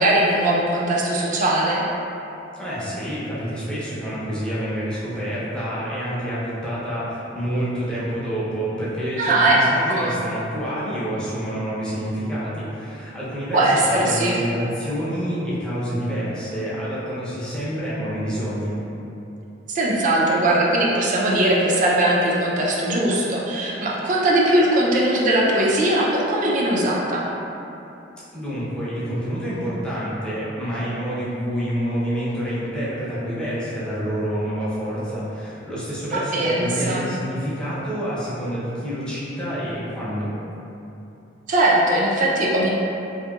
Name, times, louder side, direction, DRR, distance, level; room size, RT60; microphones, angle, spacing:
voice 1, 0.0-1.8 9.2-9.6 10.0-10.2 13.5-14.4 19.7-27.2 36.1-37.1 41.5-42.7, right 1 dB, 45° right, -4 dB, 0.4 m, -20 dB
voice 2, 2.6-18.7 28.3-40.3, equal, 5° left, -11 dB, 0.6 m, -28 dB
2.8 x 2.5 x 2.3 m, 2.9 s
head